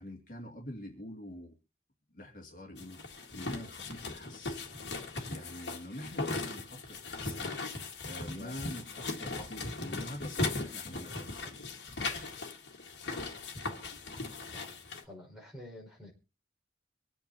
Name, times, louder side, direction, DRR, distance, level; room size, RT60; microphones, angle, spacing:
voice 1, 0.0-1.5 2.1-4.6 5.3-11.5, left 1 dB, 45° left, 0 dB, 2.4 m, -46 dB
sound 1, 2.8-15.0, left 3 dB, 75° left, 1.8 m, -38 dB
voice 2, 14.4-14.7 15.0-16.1, left 1 dB, 5° right, -3 dB, 5.4 m, -49 dB
25.0 x 8.9 x 2.9 m, 0.32 s
head